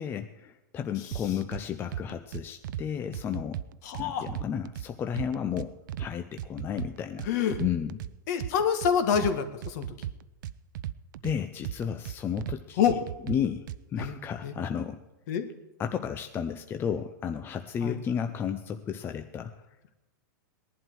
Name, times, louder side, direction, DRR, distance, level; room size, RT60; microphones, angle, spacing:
voice 1, 0.0-3.6 4.0-5.7 6.0-7.3 7.6-8.0 11.2-12.8 13.3-13.7 13.9-15.0 15.8-19.5, left 8 dB, 20° left, 7 dB, 0.6 m, -32 dB
voice 2, 1.0-1.3 3.8-4.3 7.3-7.6 8.3-9.9 12.8-13.0 14.0-14.1 14.4-14.5 15.3-15.5 17.8-18.0, left 8 dB, 55° left, 8 dB, 1.8 m, -27 dB
sound 1, 1.1-1.6 1.9-2.8 3.1-4.9 5.2-6.1 6.4-8.1 8.4-9.3 9.6-11.3 11.6-12.6 12.9-14.1, right 12 dB, 65° right, 0.6 m, -36 dB
19.0 x 11.0 x 4.7 m, 0.97 s
supercardioid pair, 145°, 11 cm